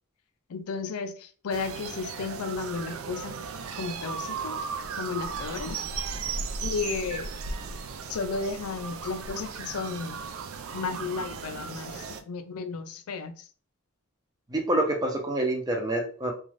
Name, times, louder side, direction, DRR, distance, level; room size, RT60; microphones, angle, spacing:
voice 1, 0.5-3.4 3.8-4.6 5.0-5.8 6.6-7.3 8.1-10.2 10.7-13.5, left 4 dB, 80° left, 0.4 m, -33 dB
sound 1, 1.5-12.2, right 5 dB, 65° right, 0.3 m, -36 dB
voice 2, 14.5-16.3, right 1 dB, 15° right, 0.5 m, -27 dB
2.5 x 2.3 x 3.1 m
head